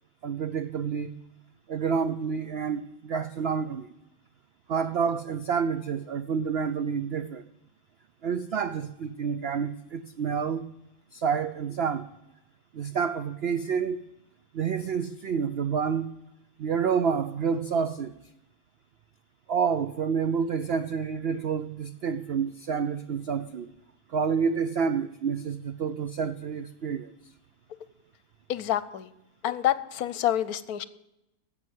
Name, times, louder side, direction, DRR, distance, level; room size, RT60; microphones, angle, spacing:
voice 1, 0.2-1.1 1.7-3.9 4.7-7.5 8.2-10.6 11.1-12.1 12.7-14.0 14.5-16.1 16.6-18.2 19.5-23.7 24.1-27.1, right 6 dB, 75° right, 11 dB, 0.5 m, -28 dB
voice 2, 28.5-29.1 29.4-30.8, left 12 dB, 70° left, 16 dB, 1.1 m, -27 dB
11.0 x 7.8 x 9.4 m, 0.90 s
omnidirectional pair, 1.8 m